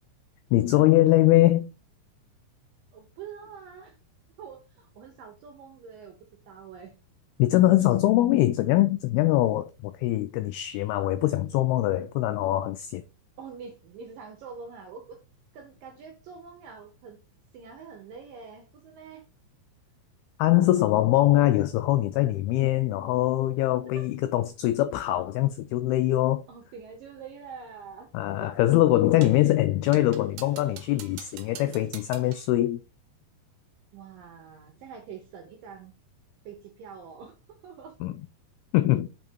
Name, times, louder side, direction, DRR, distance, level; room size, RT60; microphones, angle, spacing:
voice 1, 0.5-1.7 7.4-13.0 20.4-26.4 28.1-32.8 38.0-38.1 38.7-39.1, left 15 dB, 90° left, 2.2 m, -22 dB
voice 2, 2.9-4.0 4.4-6.2 6.5-6.9 13.4-15.2 15.5-17.2 17.5-19.2 24.0-24.1 26.5-28.1 28.4-28.8 33.9-35.9 36.4-38.0, right 6 dB, 70° right, 2.2 m, -45 dB
sound 1, 29.2-29.5 29.9-32.5, right 10 dB, 85° right, 3.0 m, -45 dB
8.0 x 3.8 x 4.5 m
omnidirectional pair, 5.0 m